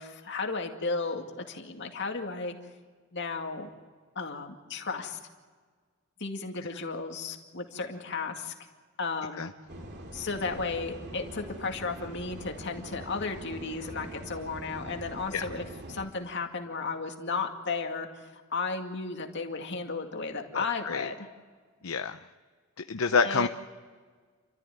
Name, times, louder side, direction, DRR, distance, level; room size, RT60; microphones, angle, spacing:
voice 1, 0.0-2.5 3.1-3.7 4.2-5.2 6.2-8.5 9.0-9.5 10.1-21.3 23.2-23.5, left 4 dB, 55° left, 4 dB, 2.3 m, -34 dB
sound 1, 9.7-16.1, right 1 dB, 50° right, 2.8 m, -43 dB
voice 2, 20.5-21.1 21.8-22.2 22.9-23.5, left 5 dB, 75° left, 8 dB, 0.7 m, -27 dB
30.0 x 13.5 x 9.3 m, 1.5 s
head